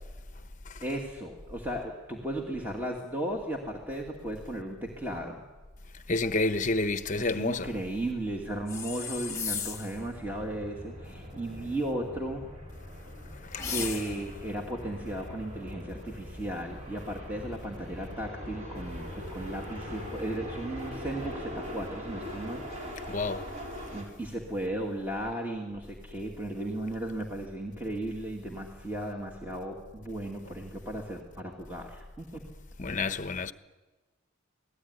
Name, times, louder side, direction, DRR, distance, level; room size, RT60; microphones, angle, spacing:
voice 1, 0.8-5.4 7.2-12.5 13.7-23.1 23.9-32.4, right 1 dB, 10° right, 2.3 m, -35 dB
voice 2, 6.1-7.7 13.4-13.7 23.1-23.5 32.8-33.5, left 3 dB, 40° left, 1.0 m, -29 dB
sound 1, 7.0-24.0, equal, 35° right, 6.0 m, -42 dB
sound 2, 8.7-10.0 13.5-14.4, left 6 dB, 15° left, 2.2 m, -35 dB
27.5 x 18.5 x 9.7 m
head